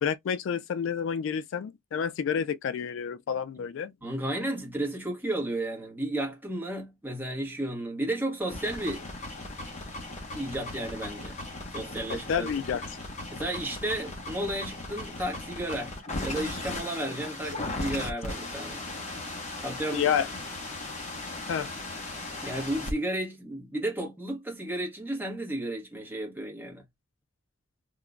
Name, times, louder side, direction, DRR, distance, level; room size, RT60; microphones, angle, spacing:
voice 1, 0.0-3.9 12.1-12.9 19.9-20.3 21.5-21.7, left 7 dB, 70° left, 0.3 m, -29 dB
voice 2, 4.0-9.1 10.3-11.4 11.7-12.5 13.3-15.9 16.2-18.8 19.6-20.1 22.4-26.8, right 1 dB, 10° right, 1.2 m, -33 dB
sound 1, 8.4-22.9, left 2 dB, 35° left, 1.0 m, -37 dB
3.7 x 2.9 x 2.2 m
head